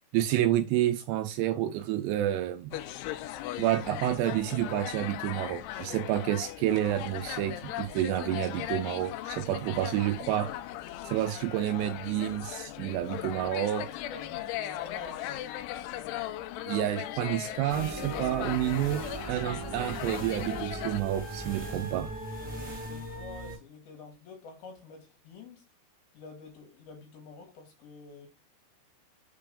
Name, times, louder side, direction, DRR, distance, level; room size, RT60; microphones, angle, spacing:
voice 1, 0.1-2.8 3.6-10.5 11.0-13.9 16.7-19.0 19.3-22.1, right 12 dB, 80° right, 2.5 m, -29 dB
sound 1, 2.7-21.0, left 13 dB, 85° left, 2.5 m, -38 dB
voice 2, 13.2-13.5 13.8-15.5 22.4-25.7 26.1-28.3, left 4 dB, 65° left, 3.2 m, -48 dB
sound 2, 17.7-23.6, right 2 dB, 5° right, 0.9 m, -38 dB
6.7 x 3.1 x 5.0 m
omnidirectional pair, 5.2 m